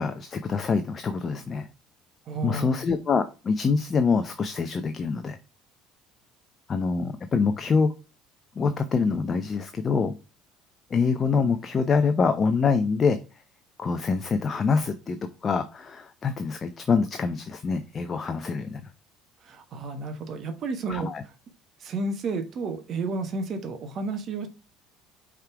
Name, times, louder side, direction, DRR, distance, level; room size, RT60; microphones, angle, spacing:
voice 1, 0.0-1.7 2.4-5.4 6.7-7.9 8.6-10.2 10.9-13.2 13.8-18.8 20.9-21.2, left 5 dB, 30° left, 0.6 m, -25 dB
voice 2, 2.3-2.7 19.4-21.1 21.8-24.5, right 3 dB, 40° right, 1.3 m, -31 dB
5.5 x 3.8 x 4.7 m
figure-of-eight pair, 60°, 0 cm